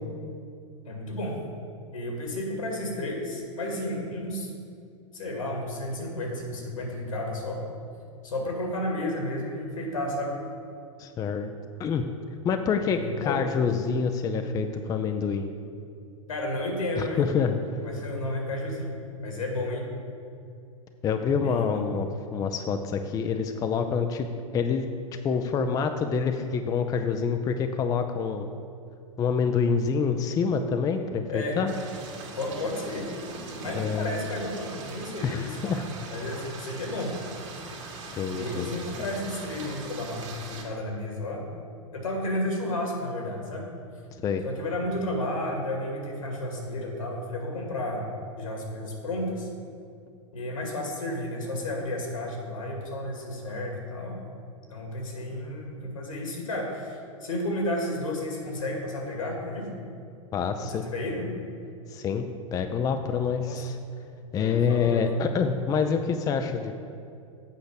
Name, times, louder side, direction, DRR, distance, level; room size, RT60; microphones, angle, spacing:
voice 1, 0.8-1.4 1.9-4.5 5.1-7.6 8.2-10.4 12.8-13.5 16.3-17.2 17.8-19.9 21.2-21.9 31.3-31.6 32.4-33.1 33.6-35.8 36.1-37.1 38.3-41.4 41.9-43.7 44.4-48.0 48.4-49.5 50.3-54.2 54.7-59.7 60.6-61.3 63.4-63.6 64.4-65.0, left 1 dB, 75° left, 0 dB, 2.2 m, -32 dB
voice 2, 11.0-11.5 11.8-12.1 12.4-15.5 17.0-17.6 21.0-24.3 24.5-24.9 25.2-28.5 29.2-31.7 33.7-34.2 35.2-35.8 38.2-38.7 44.2-44.4 60.3-60.8 61.9-62.3 62.5-63.8 64.3-66.7, left 6 dB, 20° left, 7 dB, 0.4 m, -26 dB
sound 1, 31.7-40.7, right 3 dB, 60° right, 1.9 m, -41 dB
8.2 x 5.1 x 6.6 m, 2.5 s
figure-of-eight pair, 95°, 17 cm